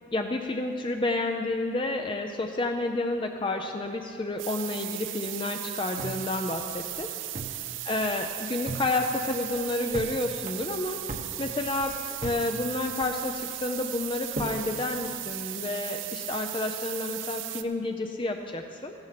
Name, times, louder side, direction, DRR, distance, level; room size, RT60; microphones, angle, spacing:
voice 1, 0.1-7.1 7.9-11.0 11.4-12.0 12.2-18.9, left 2 dB, 25° left, 4 dB, 0.5 m, -30 dB
sound 1, 4.4-17.6, right 14 dB, 90° right, 0.5 m, -37 dB
sound 2, 6.0-7.7 8.0-8.1 8.4-8.9 9.3-10.1 10.4-12.5 12.7-13.4 13.9-14.6, right 2 dB, 40° right, 1.0 m, -38 dB
14.5 x 9.6 x 5.8 m, 2.4 s
head